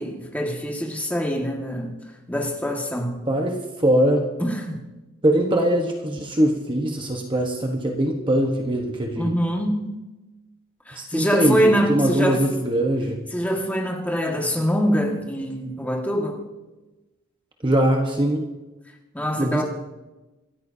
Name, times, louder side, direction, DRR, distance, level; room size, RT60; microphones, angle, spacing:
voice 1, 0.0-2.0 2.3-3.2 4.4-4.8 9.2-9.9 10.9-12.4 13.3-16.4 19.1-19.6, equal, 5° left, 0 dB, 1.8 m, -24 dB
voice 2, 3.3-4.2 5.2-9.3 10.9-13.2 17.6-18.4 19.4-19.6, right 1 dB, 20° right, 1 dB, 1.2 m, -22 dB
26.5 x 14.0 x 2.8 m, 1.1 s
head